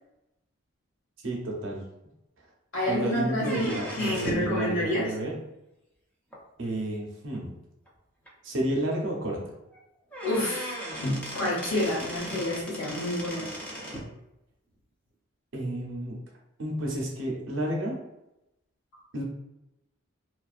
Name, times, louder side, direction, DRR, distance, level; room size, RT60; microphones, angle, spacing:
voice 1, 1.2-1.8 2.9-5.4 6.6-7.5 8.4-9.5 15.5-16.2 16.6-18.0 19.1-19.2, right 1 dB, 60° right, -1 dB, 0.6 m, -31 dB
voice 2, 2.7-5.1 10.2-10.7 11.0-13.5, left 1 dB, 85° left, -5 dB, 1.1 m, -28 dB
sound 1, 3.4-4.6 6.3-6.4 7.3-7.4 7.9-8.0 8.3-8.4 9.7-9.8 10.1-14.1, equal, 5° left, 0.3 m, -37 dB
2.4 x 2.2 x 2.3 m, 0.89 s
head